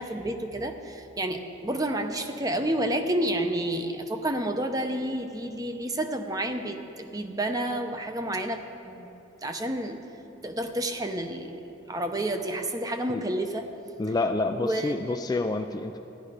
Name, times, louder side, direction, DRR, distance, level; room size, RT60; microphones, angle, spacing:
voice 1, 0.0-9.1 9.4-10.0 10.4-13.7 14.4-15.2, right 1 dB, 20° right, 6 dB, 0.7 m, -30 dB
voice 2, 14.0-16.0, left 2 dB, 20° left, 6 dB, 0.3 m, -28 dB
15.5 x 11.5 x 5.0 m, 2.9 s
head